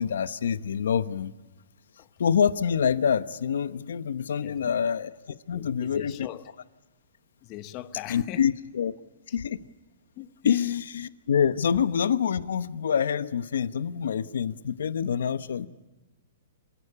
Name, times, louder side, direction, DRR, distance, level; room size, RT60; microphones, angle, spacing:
voice 1, 0.0-1.3 2.2-6.3 8.1-8.9 9.3-9.6 10.4-15.7, left 7 dB, 80° left, 0.9 m, -26 dB
voice 2, 4.4-4.7 5.5-6.4 7.4-8.4 9.3-9.4 10.2-10.6, left 14 dB, 25° left, 0.8 m, -40 dB
28.0 x 16.5 x 9.9 m
hypercardioid pair, 165°, 0 cm